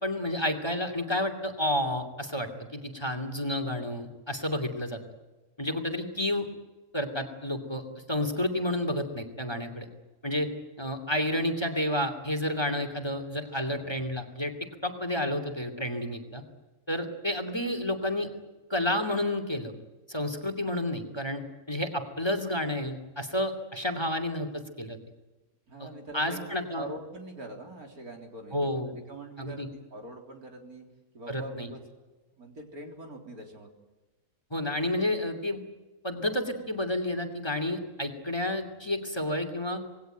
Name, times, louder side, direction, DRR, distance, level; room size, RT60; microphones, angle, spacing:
voice 1, 0.0-5.0 5.6-6.5 6.9-9.9 10.2-10.5 10.8-14.5 14.8-16.4 16.9-18.3 18.7-19.7 20.1-21.4 21.7-25.0 25.8-25.9 26.1-26.8 28.5-29.0 29.4-29.7 31.3-31.7 34.5-35.6 36.0-39.8, left 1 dB, 15° left, 7 dB, 2.7 m, -30 dB
voice 2, 13.7-14.0 25.7-26.4 26.8-30.9 31.1-32.0 32.3-33.7, right 1 dB, 70° right, 2 dB, 4.3 m, -43 dB
26.5 x 20.0 x 9.2 m, 1.2 s
omnidirectional pair, 1.6 m